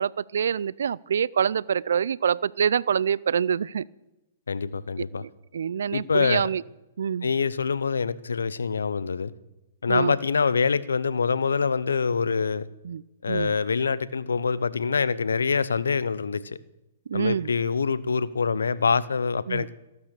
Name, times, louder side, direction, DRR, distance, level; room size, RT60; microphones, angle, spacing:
voice 1, 0.0-3.8 5.2-6.6 7.0-7.3 9.9-10.2 12.8-13.0 13.3-13.5 17.1-17.5 19.5-19.7, right 7 dB, 75° right, 0.4 m, -26 dB
voice 2, 4.5-5.2 5.9-6.5 7.2-9.3 9.8-12.7 13.2-16.6 17.1-19.7, left 5 dB, 85° left, 0.8 m, -25 dB
15.0 x 12.0 x 6.7 m
hypercardioid pair, 120°, 0 cm